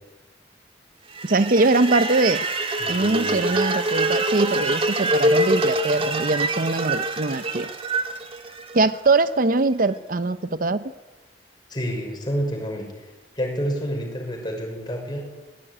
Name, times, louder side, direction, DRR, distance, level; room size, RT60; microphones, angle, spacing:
sound 1, 1.1-9.2, right 1 dB, 30° right, 2.1 m, -25 dB
voice 1, 1.2-2.4 2.9-7.7 8.7-10.8, right 3 dB, 50° right, 13 dB, 0.8 m, -22 dB
voice 2, 2.8-3.5 11.7-12.9 13.4-15.3, equal, 25° left, 1 dB, 6.1 m, -29 dB
22.5 x 18.0 x 10.0 m, 1.1 s
head